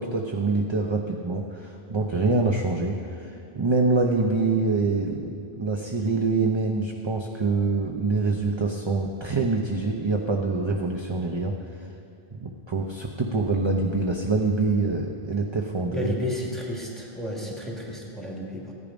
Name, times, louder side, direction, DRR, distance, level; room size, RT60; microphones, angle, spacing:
voice 1, 0.0-5.3 5.6-11.5 12.3-16.1, right 3 dB, 30° right, 1 dB, 0.6 m, -25 dB
voice 2, 15.9-18.7, left 1 dB, ahead, -2 dB, 2.0 m, -32 dB
15.0 x 10.5 x 5.1 m, 2.5 s
omnidirectional pair, 1.1 m